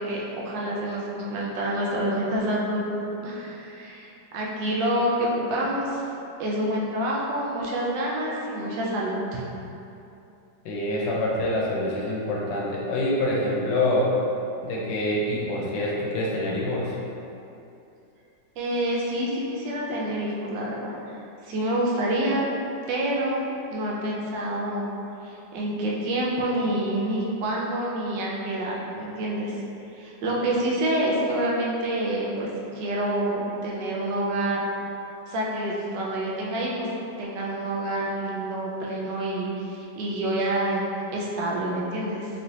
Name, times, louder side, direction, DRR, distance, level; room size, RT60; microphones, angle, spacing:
voice 1, 0.0-6.0 6.4-9.4 18.6-20.9 21.4-22.5 22.9-24.9 25.2-29.6 29.9-32.5 32.7-34.6 35.3-36.9 37.2-40.8 41.1-42.3, right 1 dB, 75° right, -4 dB, 1.2 m, -27 dB
voice 2, 10.6-14.1 14.6-16.9, left 1 dB, 80° left, -4 dB, 1.2 m, -26 dB
3.1 x 2.9 x 2.7 m, 2.7 s
omnidirectional pair, 2.0 m